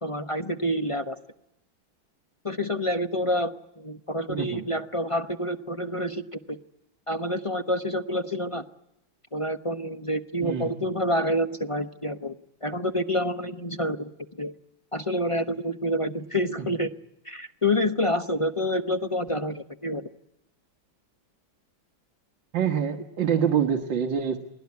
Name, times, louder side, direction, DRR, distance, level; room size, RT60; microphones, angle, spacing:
voice 1, 0.0-1.2 2.4-6.6 7.1-8.6 9.3-12.3 12.6-14.1 14.4-14.5 14.9-16.9 17.2-20.1, left 1 dB, 25° left, 6 dB, 0.7 m, -28 dB
voice 2, 4.3-4.6 10.4-10.7 16.6-16.7 22.5-24.4, right 8 dB, 70° right, 4 dB, 2.1 m, -26 dB
29.5 x 20.0 x 9.6 m, 0.84 s
omnidirectional pair, 2.1 m